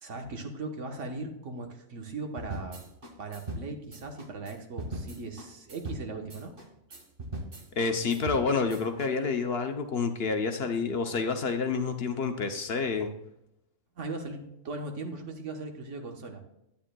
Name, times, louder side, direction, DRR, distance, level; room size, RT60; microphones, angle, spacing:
voice 1, 0.0-2.8 3.2-6.6 14.0-16.4, right 3 dB, 65° right, 4 dB, 1.4 m, -38 dB
sound 1, 2.4-9.1, right 1 dB, 45° right, 1.4 m, -40 dB
voice 2, 7.8-13.1, left 4 dB, 55° left, 6 dB, 0.8 m, -28 dB
10.0 x 9.3 x 2.2 m, 0.85 s
omnidirectional pair, 1.4 m